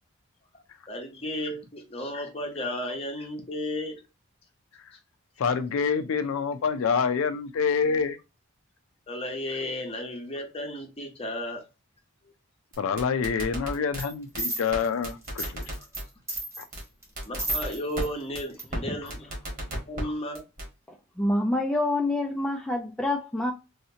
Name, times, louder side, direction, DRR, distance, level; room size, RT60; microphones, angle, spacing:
voice 1, 0.5-4.0 9.1-11.6 15.8-15.9 17.3-19.5 19.8-20.4, left 1 dB, 30° left, 0.9 m, -34 dB
voice 2, 5.4-8.2 12.8-15.6 16.6-16.7, left 6 dB, 75° left, 0.4 m, -26 dB
sound 1, 12.7-14.0 14.3-14.4 14.7-14.8 15.0-16.0 16.3-16.4 16.7-16.8 17.2-18.0 18.3-18.4 18.7-18.8 19.1-20.0 20.3-20.7, equal, 40° right, 1.4 m, -33 dB
sound 2, 14.0-14.1 14.4-16.0 16.3-18.1 18.4-18.6 19.1-19.2, right 2 dB, 15° right, 1.1 m, -32 dB
voice 3, 21.2-23.5, left 1 dB, 5° left, 0.3 m, -26 dB
3.2 x 2.8 x 2.7 m
head